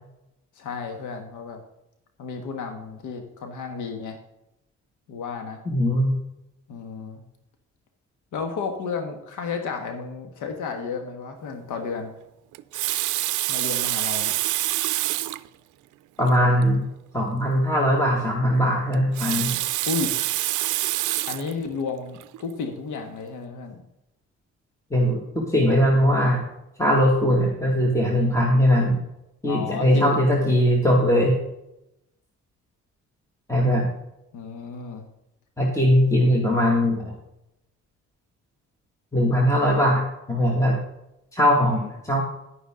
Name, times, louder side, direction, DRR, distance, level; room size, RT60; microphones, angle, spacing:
voice 1, 0.5-1.6 2.2-4.2 5.1-5.6 6.7-7.2 8.3-12.1 13.5-14.3 19.9-20.4 21.3-23.7 29.5-30.2 34.3-35.1 41.6-41.9, left 5 dB, 80° left, 5 dB, 1.4 m, -32 dB
voice 2, 5.7-6.2 16.2-16.8 17.1-19.6 24.9-26.5 26.8-29.0 29.4-31.3 33.5-33.9 35.6-37.1 39.1-40.8 41.3-42.2, equal, 10° left, -1 dB, 2.1 m, -20 dB
Water tap faucet, 12.5-15.5 16.2-16.3 16.6-16.7 18.9-21.5 22.2-22.4, right 16 dB, 80° right, 0.5 m, -26 dB
11.0 x 9.4 x 3.8 m, 0.86 s
cardioid pair, 90°, 30 cm